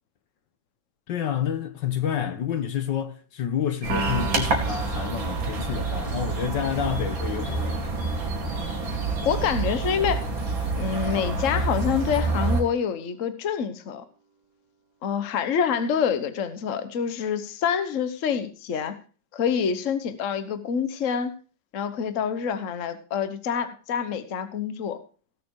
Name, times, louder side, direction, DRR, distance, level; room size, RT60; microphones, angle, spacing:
voice 1, 1.1-7.9, left 9 dB, 70° left, 1.7 m, -29 dB
sound 1, 3.8-12.6, right 3 dB, 90° right, 3.2 m, -28 dB
Piano, 3.9-10.3, right 3 dB, 55° right, 1.9 m, -38 dB
voice 2, 9.2-10.3 10.7-14.0 15.0-19.0 19.3-21.3 21.7-25.0, left 7 dB, 45° left, 1.3 m, -26 dB
17.5 x 6.8 x 4.7 m
omnidirectional pair, 2.1 m